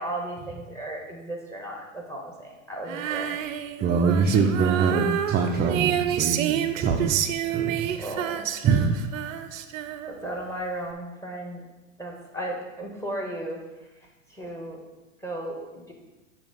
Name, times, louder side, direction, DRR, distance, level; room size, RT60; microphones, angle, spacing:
voice 1, 0.0-3.4 8.0-8.5 10.2-11.6 12.0-13.6 14.4-14.8 15.2-15.9, right 1 dB, 5° left, 0 dB, 1.6 m, -35 dB
Female singing, 2.9-10.3, right 10 dB, 70° right, 0.6 m, -28 dB
voice 2, 3.8-7.2 7.5-8.0 8.6-8.9, right 5 dB, 25° right, 1 dB, 0.5 m, -24 dB
8.5 x 2.9 x 5.4 m, 1.1 s
hypercardioid pair, 100°, 40 cm